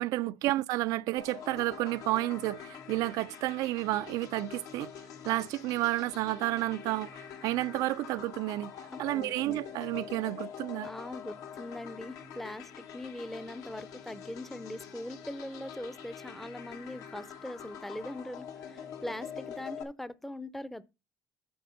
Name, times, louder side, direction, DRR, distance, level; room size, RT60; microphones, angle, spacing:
voice 1, 0.0-4.9 5.2-8.7 9.0-10.9, right 17 dB, 90° right, 0.4 m, -31 dB
sound 1, 1.2-19.8, left 8 dB, 75° left, 1.6 m, -45 dB
voice 2, 8.9-9.3 10.8-20.8, left 1 dB, 5° left, 0.5 m, -41 dB
8.6 x 4.1 x 6.9 m
cardioid pair, 145°, 6 cm